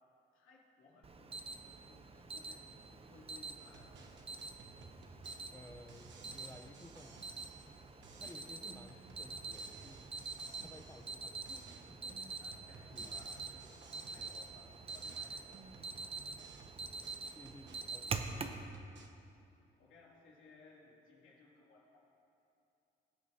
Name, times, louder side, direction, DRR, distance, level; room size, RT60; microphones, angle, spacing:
voice 1, 0.3-1.4 1.7-4.3 12.4-13.8 14.1-16.5 16.9-17.0 17.8-18.3 19.8-22.0, left 3 dB, 80° left, -4 dB, 2.7 m, -62 dB
Alarm, 1.0-18.6, right 4 dB, 30° right, 0.7 m, -46 dB
sound 1, 3.6-7.8 8.0-11.2 11.4-14.6 14.9-19.1, right 4 dB, 65° right, 1.1 m, -58 dB
voice 2, 5.5-7.3 8.2-10.1 10.6-12.2 12.9-13.2 14.1-14.5 17.4-18.5, left 2 dB, 15° left, 7 dB, 0.7 m, -56 dB
21.0 x 8.1 x 2.8 m, 2.7 s
cardioid pair, 90°, 20 cm